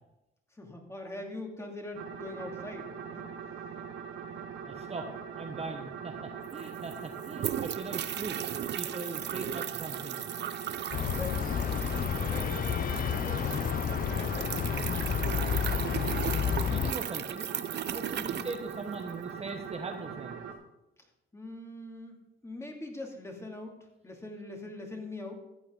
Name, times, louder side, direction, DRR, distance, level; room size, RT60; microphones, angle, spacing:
voice 1, 0.5-3.3 11.1-12.9 13.1-13.6 13.9-15.0 18.2-18.5 21.0-21.1 21.3-23.8 24.0-25.4, left 2 dB, 15° left, 1 dB, 2.6 m, -43 dB
sound 1, 1.9-20.5, right 7 dB, 80° right, 1.3 m, -42 dB
voice 2, 4.6-8.4 8.7-10.3 16.2-17.5 17.9-20.5, right 3 dB, 30° right, 4 dB, 1.1 m, -40 dB
sound 2, 6.2-6.3 6.4-19.2, right 10 dB, 60° right, 0.6 m, -37 dB
sound 3, 10.9-16.9, left 9 dB, 45° left, 0.5 m, -30 dB
14.0 x 8.8 x 3.8 m, 0.90 s
cardioid pair, 90°, 20 cm